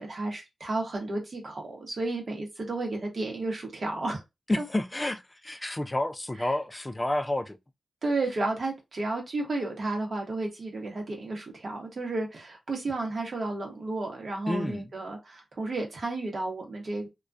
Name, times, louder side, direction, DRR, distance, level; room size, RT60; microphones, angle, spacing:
voice 1, 0.0-4.2 4.6-4.7 6.4-6.5 8.0-17.1, right 2 dB, 55° right, 0.9 m, -32 dB
voice 2, 4.5-7.6 14.5-14.8, left 1 dB, 20° left, 0.3 m, -30 dB
2.3 x 2.1 x 2.5 m
wide cardioid pair, 80°, 0 cm